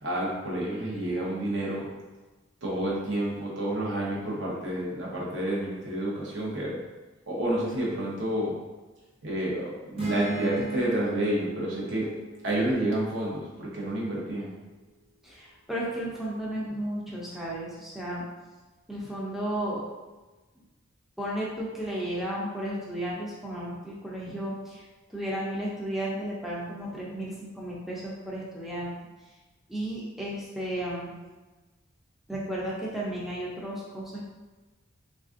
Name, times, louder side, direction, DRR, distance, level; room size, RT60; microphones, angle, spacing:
voice 1, 0.0-1.8 2.6-6.8 7.3-8.5 9.2-12.1 12.4-14.5, right 1 dB, 65° right, -4 dB, 0.8 m, -29 dB
sound 1, 10.0-13.7, right 2 dB, 30° right, 0.8 m, -36 dB
voice 2, 15.2-18.3 18.9-19.8 21.2-28.9 29.7-31.1 32.3-34.3, right 1 dB, ahead, -6 dB, 0.4 m, -33 dB
3.3 x 2.4 x 2.4 m, 1.2 s
head